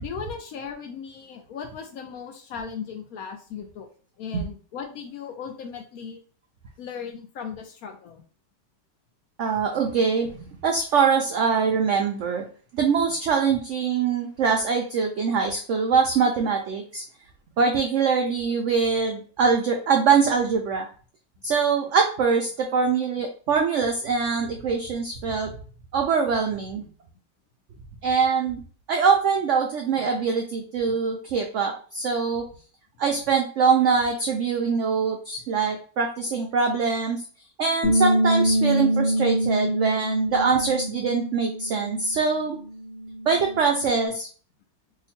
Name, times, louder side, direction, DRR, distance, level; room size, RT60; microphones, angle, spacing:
voice 1, 0.0-3.9 4.2-6.2 6.8-8.2 18.5-18.6, left 6 dB, 70° left, 4 dB, 0.9 m, -37 dB
voice 2, 9.4-12.4 12.7-17.0 17.6-20.9 21.4-25.5 25.9-26.9 28.0-28.6 28.9-32.5 33.0-37.2 37.6-42.6 43.3-44.3, right 5 dB, 90° right, 2 dB, 0.6 m, -23 dB
Bass guitar, 37.8-44.1, right 1 dB, 45° left, 0.9 m, -25 dB
2.9 x 2.5 x 4.1 m, 0.41 s
omnidirectional pair, 1.8 m